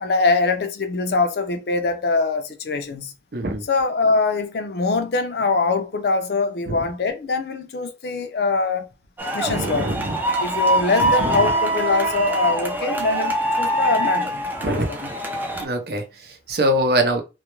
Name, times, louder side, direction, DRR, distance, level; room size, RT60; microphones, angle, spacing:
voice 1, 0.0-3.1 3.7-8.9 9.3-9.9 10.4-15.1, left 3 dB, 60° left, 0.4 m, -23 dB
voice 2, 3.3-3.7 6.7-6.8 9.5-10.2 11.0-11.5 14.6-14.9 15.6-17.2, right 1 dB, 60° right, 0.6 m, -24 dB
sound 1, 9.2-15.6, right 1 dB, 10° right, 0.4 m, -23 dB
2.3 x 2.1 x 2.9 m
head